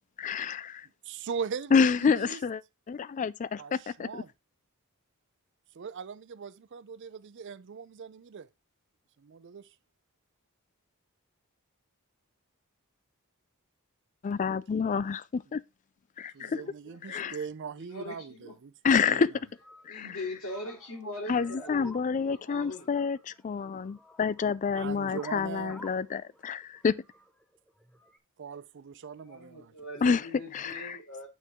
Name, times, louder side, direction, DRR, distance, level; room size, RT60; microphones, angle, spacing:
voice 1, 0.2-0.9 1.7-2.6 2.9-4.2 14.2-15.6 16.2-16.6 17.1-17.4 18.8-19.3 19.9-20.1 21.3-27.0 30.0-30.3 30.5-31.0, left 5 dB, 35° left, 0.3 m, -28 dB
voice 2, 1.0-2.4 3.6-4.3 5.7-8.5 9.2-9.7 16.3-19.3 24.8-25.8 28.4-29.7, right 6 dB, 55° right, 0.4 m, -40 dB
voice 3, 16.4-17.2 17.9-18.5 19.0-19.2 19.9-22.0 22.3-23.0 29.1-31.3, left 1 dB, 75° left, 3.0 m, -42 dB
sound 1, 19.3-28.2, equal, 5° left, 0.8 m, -53 dB
9.0 x 4.6 x 3.5 m
head